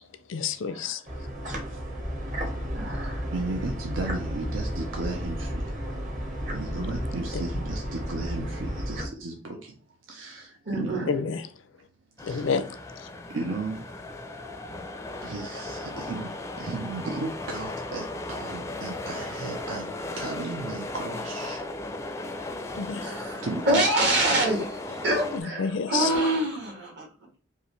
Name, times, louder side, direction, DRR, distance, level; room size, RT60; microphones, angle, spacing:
voice 1, 0.3-1.3 7.3-7.4 11.1-11.5 12.2-13.1 15.2-15.3 22.7-23.2 25.3-26.3, left 6 dB, 75° left, 0.5 m, -30 dB
sound 1, 1.1-9.1, equal, 40° right, 1.1 m, -32 dB
voice 2, 2.7-3.3 10.6-11.1 23.0-27.1, right 1 dB, 60° right, 1.8 m, -26 dB
voice 3, 3.3-6.0 6.4-9.8 10.1-11.1 12.2-12.4 13.3-14.0 15.2-21.6 23.4-23.8, right 2 dB, 80° right, 0.6 m, -35 dB
sound 2, 12.2-25.4, left 2 dB, 15° left, 0.4 m, -36 dB
5.4 x 2.5 x 3.1 m
head